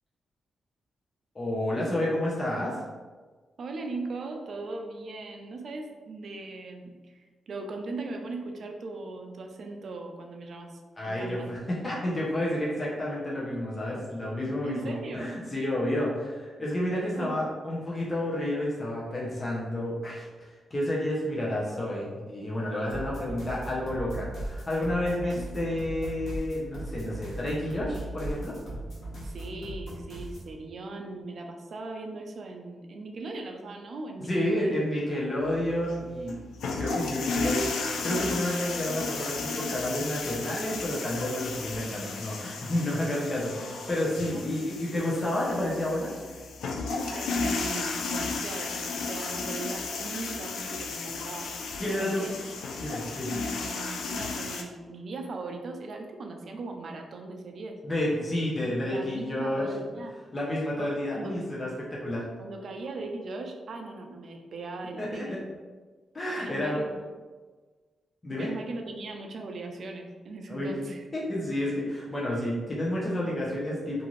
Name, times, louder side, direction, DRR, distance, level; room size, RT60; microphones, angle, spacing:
voice 1, 1.3-2.8 11.0-28.5 34.2-36.4 36.8-46.1 50.9-51.0 51.8-52.3 52.8-53.3 57.8-59.7 60.3-62.3 65.0-65.4 66.1-66.8 68.2-68.5 70.5-70.8 71.1-74.1, left 1 dB, 30° left, -5 dB, 0.7 m, -30 dB
voice 2, 3.6-10.8 11.1-11.5 14.6-15.3 17.2-17.5 25.1-25.5 29.2-34.8 44.2-44.8 47.0-51.5 51.9-52.3 53.3-57.8 58.3-60.1 60.8-61.4 62.4-65.4 66.4-67.0 68.3-71.0, right 3 dB, 65° right, 3 dB, 0.4 m, -39 dB
sound 1, 22.9-30.5, right 1 dB, 70° left, 0.9 m, -38 dB
sound 2, 35.5-54.6, left 4 dB, 90° left, 0.3 m, -34 dB
2.6 x 2.4 x 3.1 m, 1.4 s
cardioid pair, 75°, 0 cm